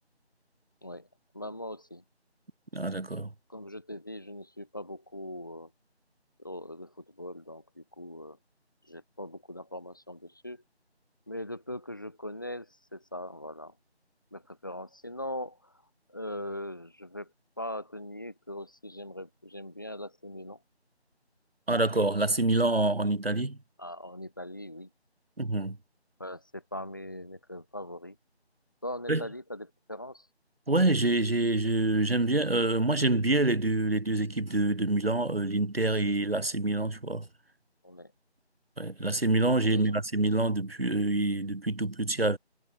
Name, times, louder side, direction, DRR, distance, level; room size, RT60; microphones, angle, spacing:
voice 1, 1.3-2.0 3.5-5.7 6.4-8.4 8.8-10.6 11.3-13.7 14.3-15.7 16.1-17.3 17.6-20.6 23.8-24.9 26.2-28.2 28.8-30.3 37.8-38.1 39.7-40.0, left 1 dB, 20° left, 3.0 m, -40 dB
voice 2, 2.7-3.3 21.7-23.6 25.4-25.8 29.1-29.2 30.7-37.3 38.8-42.4, right 2 dB, 60° right, 1.8 m, -26 dB
figure-of-eight pair, 180°, 33 cm